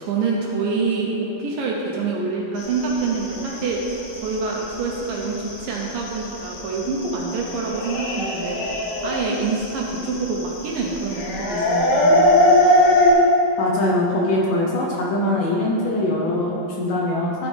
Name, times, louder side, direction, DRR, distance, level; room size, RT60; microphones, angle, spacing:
voice 1, 0.0-8.6 9.0-12.2, right 4 dB, 75° right, -2 dB, 2.2 m, -26 dB
sound 1, 2.6-13.1, left 1 dB, 90° left, 3.2 m, -21 dB
voice 2, 13.6-17.5, left 1 dB, 75° left, -3 dB, 2.2 m, -22 dB
13.5 x 5.0 x 3.4 m, 2.8 s
omnidirectional pair, 4.4 m